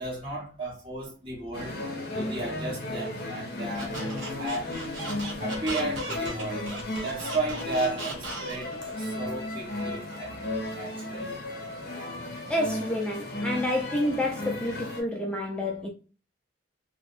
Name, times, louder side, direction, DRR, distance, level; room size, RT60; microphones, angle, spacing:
voice 1, 0.0-1.8 2.1-4.0 4.4-4.7 5.4-6.7 7.0-11.4, right 2 dB, 25° right, 0.8 m, -34 dB
sound 1, 1.5-15.0, left 1 dB, 50° left, 0.8 m, -35 dB
Squeak, 3.8-8.8, right 2 dB, 70° right, 0.9 m, -36 dB
voice 2, 12.5-15.9, left 1 dB, 5° left, 0.3 m, -29 dB
2.7 x 2.1 x 2.3 m
head